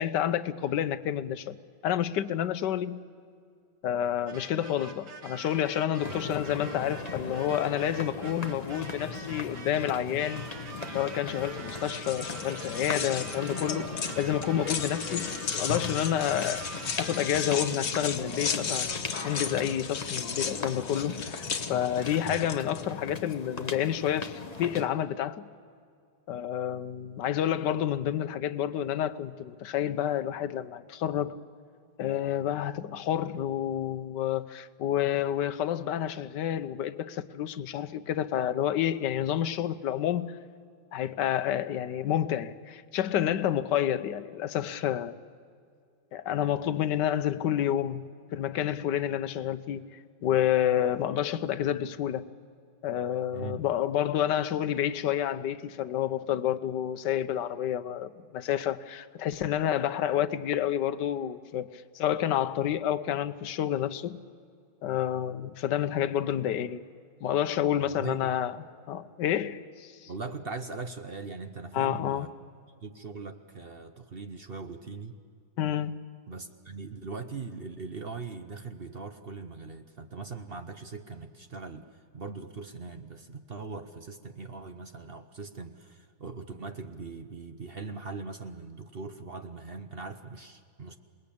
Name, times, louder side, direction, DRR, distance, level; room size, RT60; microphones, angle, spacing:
voice 1, 0.0-1.6 1.8-3.0 3.8-10.4 10.9-15.3 15.6-16.6 17.0-18.9 19.2-25.5 26.3-31.4 32.0-40.3 40.9-45.2 46.1-49.9 50.2-52.2 52.8-61.7 61.9-64.2 64.8-66.8 67.2-68.6 68.9-70.1 71.7-72.3 75.6-76.0, left 10 dB, 80° left, 1.4 m, -29 dB
sound 1, 4.3-17.9, right 4 dB, 75° right, 2.3 m, -45 dB
sound 2, 6.0-24.9, left 4 dB, 25° left, 1.0 m, -38 dB
sound 3, 11.7-22.8, left 6 dB, 60° left, 1.7 m, -35 dB
voice 2, 67.8-68.3 70.1-72.3 72.8-75.1 76.3-81.9 82.1-91.0, right 4 dB, 40° right, 0.9 m, -40 dB
27.5 x 20.0 x 8.6 m
omnidirectional pair, 1.9 m